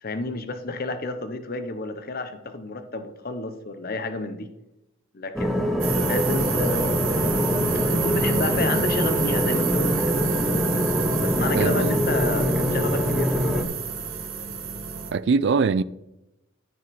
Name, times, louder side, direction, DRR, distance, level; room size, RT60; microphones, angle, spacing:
voice 1, 0.0-4.5 5.1-7.0 7.9-10.2 11.2-13.7, left 3 dB, 45° left, 0.8 m, -31 dB
sound 1, 5.3-13.6, equal, ahead, 0.9 m, -24 dB
sound 2, 5.8-15.1, right 6 dB, 80° right, 1.4 m, -29 dB
voice 2, 11.5-11.9 15.1-15.8, right 5 dB, 60° right, 0.4 m, -22 dB
13.5 x 5.1 x 4.2 m
head